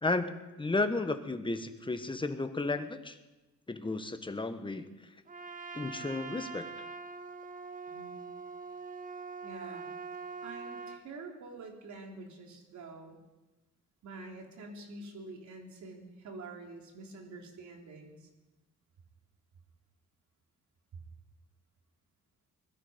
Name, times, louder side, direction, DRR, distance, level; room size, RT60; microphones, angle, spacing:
voice 1, 0.0-3.2 3.7-5.1 5.7-6.7, left 3 dB, 15° left, 8 dB, 1.4 m, -33 dB
Trumpet, 5.3-11.0, right 4 dB, 25° right, 1.0 m, -43 dB
voice 2, 7.9-8.3 9.4-9.9 10.4-13.2 14.0-18.3, right 3 dB, 70° right, 1 dB, 3.7 m, -47 dB
21.5 x 13.0 x 5.2 m, 1.1 s
cardioid pair, 90°, 30 cm